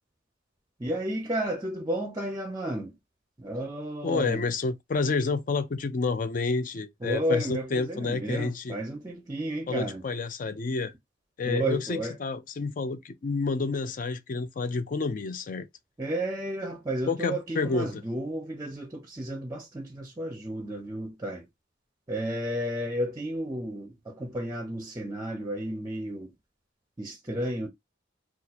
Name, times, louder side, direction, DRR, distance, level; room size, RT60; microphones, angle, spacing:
voice 1, 0.8-2.9 3.4-4.4 7.0-10.0 11.5-12.2 16.0-21.5 22.1-26.3 27.0-27.7, right 1 dB, 20° right, 0.5 m, -32 dB
voice 2, 4.0-8.8 9.7-10.9 11.4-15.7 17.1-18.0, left 4 dB, 45° left, 0.4 m, -29 dB
2.7 x 2.4 x 4.1 m
head